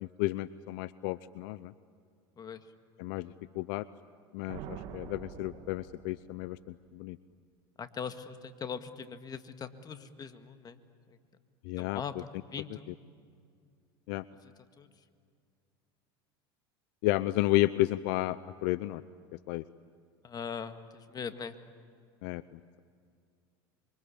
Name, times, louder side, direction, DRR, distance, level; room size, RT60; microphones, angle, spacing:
voice 1, 0.0-1.7 3.0-3.9 4.3-7.2 11.6-12.0 14.1-14.2 17.0-19.0 19.5-19.6 22.2-22.8, left 18 dB, 65° left, 16 dB, 0.6 m, -32 dB
sound 1, 4.5-6.4, right 9 dB, 60° right, 2.4 m, -45 dB
voice 2, 7.8-10.8 11.8-12.9 14.4-14.5 14.8-14.9 20.2-21.6, left 6 dB, 30° left, 9 dB, 1.9 m, -41 dB
26.5 x 24.5 x 8.7 m, 2.3 s
hypercardioid pair, 95°, 13 cm